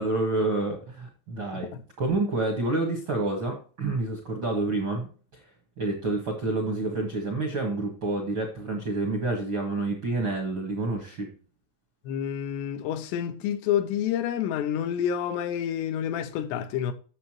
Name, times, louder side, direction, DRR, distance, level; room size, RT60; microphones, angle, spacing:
voice 1, 0.0-1.7 2.0-5.4 5.8-11.3, right 2 dB, 60° right, 1.2 m, -28 dB
voice 2, 12.1-16.9, left 9 dB, 90° left, 2.9 m, -28 dB
9.3 x 7.1 x 2.9 m
omnidirectional pair, 4.8 m